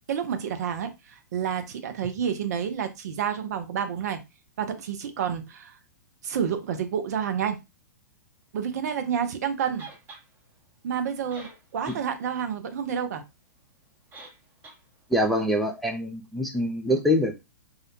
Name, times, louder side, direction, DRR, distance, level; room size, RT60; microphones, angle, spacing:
voice 1, 0.1-4.2 4.6-5.8 6.2-7.6 8.5-9.9 10.8-11.5 11.7-13.2, right 8 dB, 60° right, 0.5 m, -29 dB
sound 1, 9.8-10.2 11.0-11.1 11.3-12.0 12.4-12.5 14.1-14.4 14.6-14.8, right 3 dB, 20° right, 0.8 m, -45 dB
voice 2, 15.1-17.4, equal, ahead, 0.4 m, -25 dB
2.4 x 2.1 x 2.7 m
hypercardioid pair, 115°, 10 cm